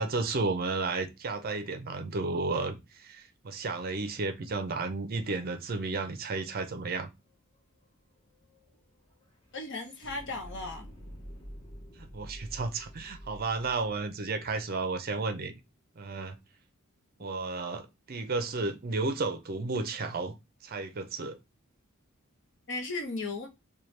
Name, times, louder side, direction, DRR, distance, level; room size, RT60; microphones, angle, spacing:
voice 1, 0.0-7.1 12.0-15.5 16.0-16.4 17.2-20.3 20.6-21.4, right 3 dB, 45° right, 0.5 m, -33 dB
sound 1, 7.3-15.2, equal, 25° left, 0.8 m, -49 dB
voice 2, 9.5-10.9 22.7-23.5, left 3 dB, 55° left, 0.8 m, -36 dB
4.3 x 2.3 x 3.1 m
head